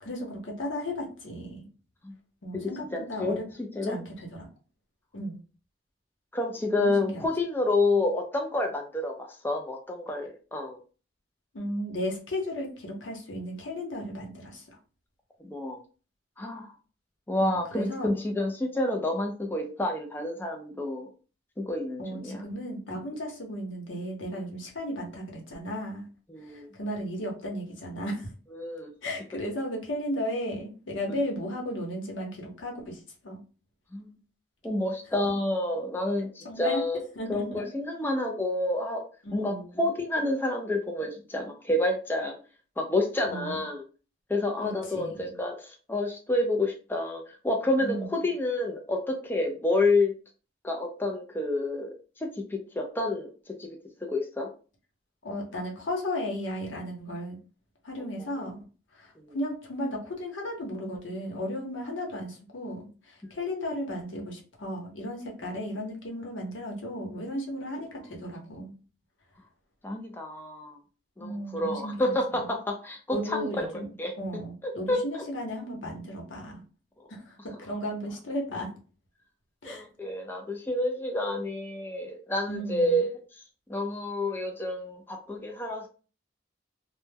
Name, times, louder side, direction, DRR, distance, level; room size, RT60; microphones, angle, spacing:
voice 1, 0.0-1.6 2.4-3.4 3.8-4.5 5.1-5.4 6.8-7.3 7.9-8.0 11.5-14.6 17.4-18.1 22.0-26.1 26.4-28.3 29.0-33.4 35.2-35.3 36.4-36.8 37.2-37.6 39.2-39.8 43.3-43.6 44.6-45.4 47.8-48.1 55.2-57.4 57.8-58.6 58.9-68.7 71.2-72.5 73.1-76.6 77.1-78.7 79.6-79.8 82.5-83.0, equal, 85° left, 0 dB, 0.8 m, -35 dB
voice 2, 2.9-3.4 3.8-4.0 6.3-10.8 15.4-15.8 16.4-16.7 17.3-21.1 21.6-22.4 26.3-26.7 28.5-28.9 33.9-34.2 34.6-37.0 37.3-39.0 39.3-42.4 42.8-43.8 44.3-50.1 50.6-52.3 52.8-53.3 53.6-53.7 54.1-54.5 58.2-58.3 59.2-59.4 69.8-70.8 71.2-73.5 74.0-74.1 74.9-75.2 79.6-83.2 83.7-85.9, left 2 dB, 10° left, 1 dB, 0.3 m, -29 dB
2.1 x 2.1 x 3.3 m, 0.36 s
head